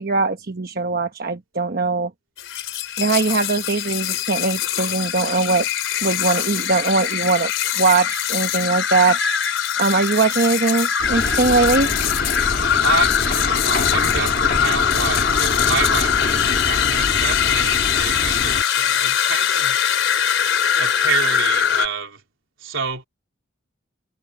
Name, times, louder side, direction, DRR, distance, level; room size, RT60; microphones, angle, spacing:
voice 1, 0.0-2.1 3.0-5.7 6.0-7.5 7.8-9.2 9.8-11.9, right 3 dB, 50° right, 1.0 m, -20 dB
sound 1, 2.4-21.9, left 9 dB, 70° left, 4.0 m, -22 dB
sound 2, 11.0-18.6, left 2 dB, 45° left, 1.6 m, -26 dB
voice 2, 12.8-19.8 20.8-22.2 22.6-23.0, right 5 dB, 75° right, 3.8 m, -28 dB
head